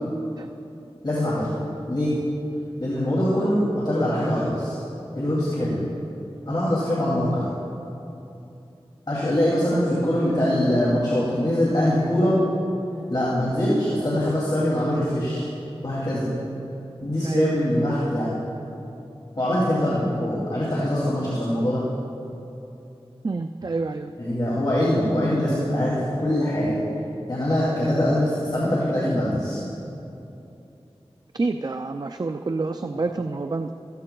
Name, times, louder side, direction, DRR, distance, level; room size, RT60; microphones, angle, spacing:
voice 1, 1.0-1.5 1.9-2.1 2.8-4.8 5.1-5.8 6.5-7.5 9.1-12.4 13.1-15.5 15.8-16.3 17.0-18.4 19.4-21.8 24.2-26.8 27.3-29.6 32.9-33.1, left 1 dB, 45° left, -8 dB, 2.5 m, -23 dB
voice 2, 23.2-24.1 31.3-33.7, right 3 dB, 40° right, 7 dB, 0.4 m, -27 dB
15.0 x 14.5 x 2.3 m, 2.8 s
wide cardioid pair, 45°, 11 cm